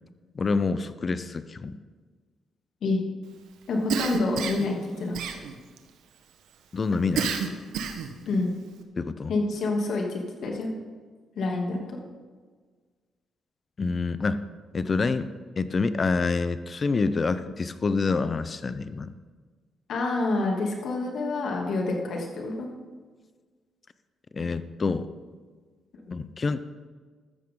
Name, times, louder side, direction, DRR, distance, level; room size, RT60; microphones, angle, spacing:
voice 1, 0.3-1.8 6.7-7.4 9.0-9.3 13.8-14.4 14.7-15.3 15.6-19.1 24.3-25.1 26.1-26.6, left 4 dB, 35° left, 13 dB, 0.8 m, -27 dB
voice 2, 3.7-5.3 8.3-8.6 9.3-10.7 11.3-12.0 19.9-22.7 26.0-26.2, left 2 dB, 65° left, 0 dB, 2.9 m, -27 dB
Cough, 3.9-4.7 5.1-5.8 7.2-8.2, right 6 dB, 85° right, 1.3 m, -29 dB
14.0 x 13.5 x 3.9 m, 1.5 s
cardioid pair, 90°, 0 cm